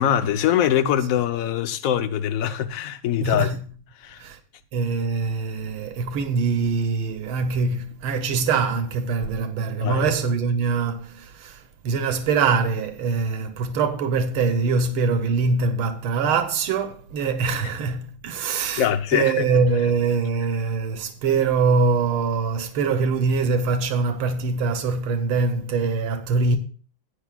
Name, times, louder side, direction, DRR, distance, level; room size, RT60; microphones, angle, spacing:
voice 1, 0.0-3.5 4.0-4.2 9.8-10.1 18.8-19.5, left 10 dB, 55° left, 1.0 m, -23 dB
voice 2, 3.2-3.7 4.2-4.4 4.7-26.6, right 4 dB, 90° right, 1.8 m, -23 dB
17.0 x 9.5 x 2.4 m
omnidirectional pair, 2.3 m